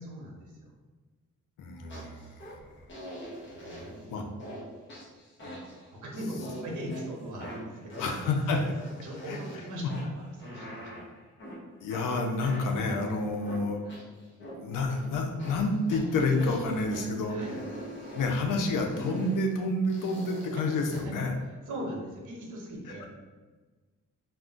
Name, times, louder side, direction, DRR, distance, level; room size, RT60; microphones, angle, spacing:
voice 1, 0.0-0.7 1.8-2.0 3.5-4.2 5.4-8.0 9.0-11.1 17.3-17.6 21.7-23.1, equal, 70° right, -1 dB, 0.8 m, -40 dB
voice 2, 1.6-2.7 4.1-4.2 8.0-8.6 9.3-9.4 9.8-9.9 11.8-14.0 14.4-17.4 18.1-21.3 22.9-23.1, left 2 dB, 80° left, 3 dB, 0.5 m, -29 dB
sound 1, 1.9-2.5 2.9-4.0 4.4-4.6 4.9-5.9 6.4-7.0 7.4-9.6 9.9-11.6 11.9-14.5 14.9-15.0 15.4-17.0 17.4-18.4 18.9-19.4 19.9-21.0, equal, 40° left, 0.8 m, -43 dB
2.3 x 2.1 x 3.7 m, 1.3 s
wide cardioid pair, 160°, 31 cm